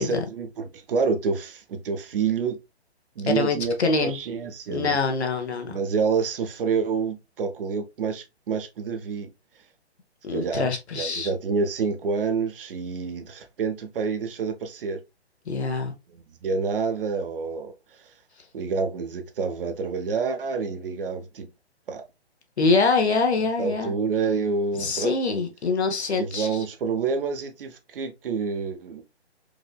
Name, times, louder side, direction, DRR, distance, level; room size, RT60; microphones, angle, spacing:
voice 1, 0.0-2.6 3.2-3.7 4.0-5.0 5.7-9.3 10.3-10.7 10.9-15.0 16.1-17.7 18.5-21.5 21.9-22.0 23.6-25.2 26.2-29.0, right 5 dB, 55° right, 0.8 m, -28 dB
voice 2, 3.3-4.2 4.7-5.8 10.2-11.3 15.5-15.9 22.6-23.9 24.8-26.6, left 4 dB, 75° left, 1.1 m, -24 dB
4.8 x 2.6 x 2.2 m
figure-of-eight pair, 140°, 33 cm